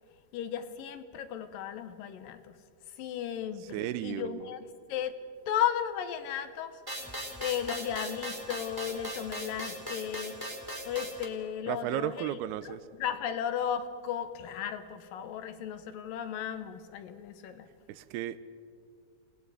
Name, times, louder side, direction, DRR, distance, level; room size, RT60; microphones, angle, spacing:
voice 1, 0.3-2.6 2.9-5.1 5.5-10.6 10.9-17.7, left 9 dB, 70° left, 2.4 m, -35 dB
voice 2, 3.7-4.5 11.7-12.9 17.9-18.4, right 12 dB, 90° right, 2.7 m, -34 dB
sound 1, 6.9-11.3, equal, 5° right, 2.2 m, -38 dB
29.5 x 18.5 x 4.9 m
omnidirectional pair, 4.5 m